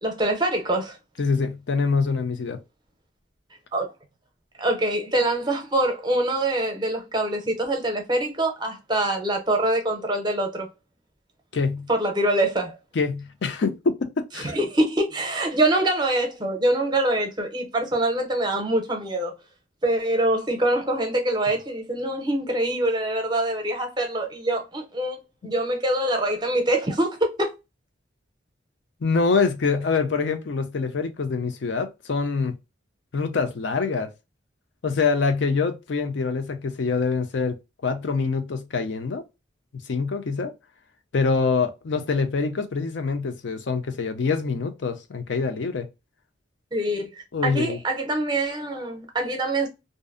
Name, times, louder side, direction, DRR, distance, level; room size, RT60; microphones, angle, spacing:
voice 1, 0.0-1.0 3.7-3.9 4.6-10.7 11.9-12.8 14.4-19.3 19.8-25.2 25.4-27.5 46.7-47.1 47.4-49.7, right 1 dB, 25° right, 0.6 m, -24 dB
voice 2, 1.2-2.6 11.5-11.9 12.9-14.6 29.0-32.5 33.1-34.1 34.8-37.6 37.8-39.2 39.9-40.5 41.1-45.9 47.3-47.8, left 4 dB, 70° left, 0.5 m, -25 dB
2.6 x 2.0 x 2.4 m
head